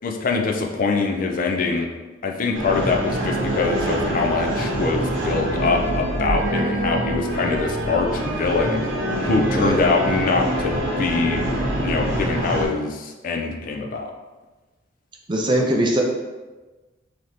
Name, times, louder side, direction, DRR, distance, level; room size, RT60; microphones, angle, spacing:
voice 1, 0.0-1.9 2.2-8.8 9.2-14.0, left 4 dB, 45° left, 2 dB, 0.4 m, -23 dB
sound 1, 2.5-12.6, right 1 dB, 75° right, 0.9 m, -25 dB
voice 2, 9.5-9.8 15.3-16.0, right 1 dB, 25° right, 0 dB, 0.5 m, -21 dB
4.0 x 2.9 x 3.2 m, 1.2 s
head